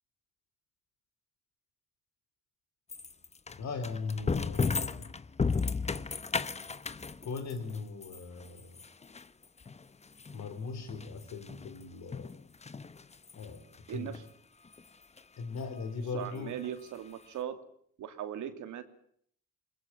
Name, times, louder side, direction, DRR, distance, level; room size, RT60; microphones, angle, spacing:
sound 1, 2.9-11.8 12.1-13.6 13.9-14.2 14.7-14.8 15.2-15.3 15.5-15.6 16.6-16.7 16.9-17.0, left 4 dB, 20° left, 0.9 m, -35 dB
voice 1, 3.6-5.1 7.2-8.8 10.3-12.3 13.3-14.2 15.4-16.6, left 4 dB, 65° left, 9 dB, 4.6 m, -39 dB
voice 2, 16.1-17.6 18.0-18.8, right 10 dB, 80° right, 9 dB, 2.8 m, -38 dB
22.0 x 21.0 x 8.8 m, 0.65 s
cardioid pair, 90°, 30 cm